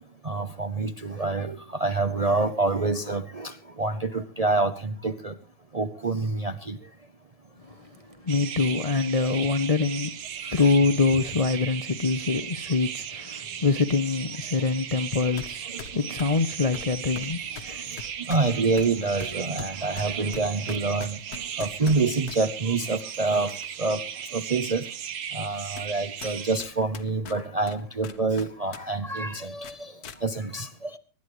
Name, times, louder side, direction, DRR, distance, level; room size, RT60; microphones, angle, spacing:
voice 1, 0.2-5.4 5.7-6.8 10.4-10.6 15.7-15.8 17.6-24.0 24.3-24.9 25.3-31.0, right 3 dB, 35° right, 0.6 m, -27 dB
voice 2, 7.6-17.9, left 4 dB, 35° left, 0.6 m, -25 dB
sound 1, 8.3-26.6, right 9 dB, 70° right, 1.4 m, -37 dB
sound 2, 15.4-15.5 15.8-22.4 23.0-23.8 24.2-24.3 25.0-25.1 25.8-25.9 26.2-28.8 29.1-29.2 29.6-30.2, left 6 dB, 90° left, 1.6 m, -42 dB
24.5 x 11.5 x 3.1 m
omnidirectional pair, 1.6 m